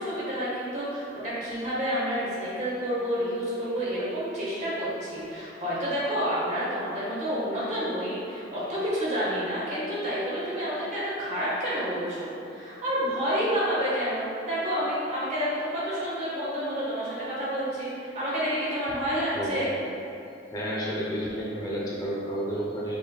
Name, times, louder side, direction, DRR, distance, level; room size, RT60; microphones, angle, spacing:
voice 1, 0.0-19.7, equal, 40° right, -8 dB, 1.4 m, -29 dB
voice 2, 20.5-23.0, equal, 20° left, -6 dB, 0.5 m, -31 dB
4.8 x 4.7 x 2.3 m, 2.7 s
head